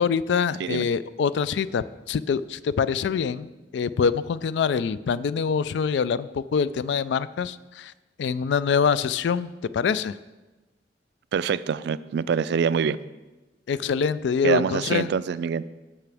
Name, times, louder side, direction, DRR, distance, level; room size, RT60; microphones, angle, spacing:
voice 1, 0.0-7.9 8.2-10.2 13.7-15.1, left 6 dB, 70° left, 16 dB, 0.3 m, -25 dB
voice 2, 11.3-13.0 14.4-15.6, right 6 dB, 65° right, 16 dB, 0.3 m, -25 dB
16.0 x 5.9 x 3.4 m, 1.1 s
head